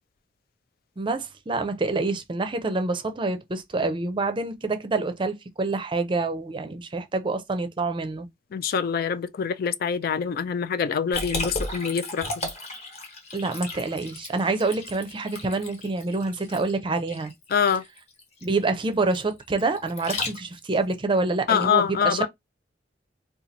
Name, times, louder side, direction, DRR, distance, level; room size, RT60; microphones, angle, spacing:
voice 1, 1.0-8.3 13.3-17.3 18.4-22.3, right 3 dB, 25° right, 0.5 m, -27 dB
voice 2, 8.5-12.5 17.5-17.8 21.5-22.3, left 7 dB, 55° left, 0.3 m, -25 dB
Liquid, 11.1-20.8, left 2 dB, 35° left, 1.1 m, -35 dB
2.8 x 2.4 x 3.9 m
head